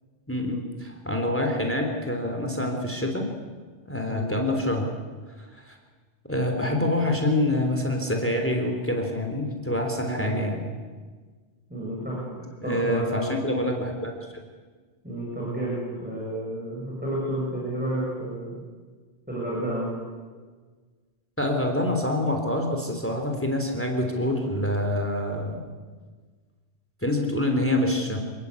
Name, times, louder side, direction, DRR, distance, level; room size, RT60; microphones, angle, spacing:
voice 1, 0.3-3.2 3.8-4.9 5.4-5.8 6.3-10.6 12.6-14.1 21.4-25.6 27.0-28.2, left 1 dB, 10° left, 3 dB, 3.4 m, -26 dB
voice 2, 10.0-10.3 11.7-12.3 12.6-13.3 15.0-18.6 19.3-20.0, right 1 dB, 10° right, -6 dB, 7.8 m, -31 dB
28.5 x 19.0 x 8.4 m, 1.5 s
omnidirectional pair, 1.1 m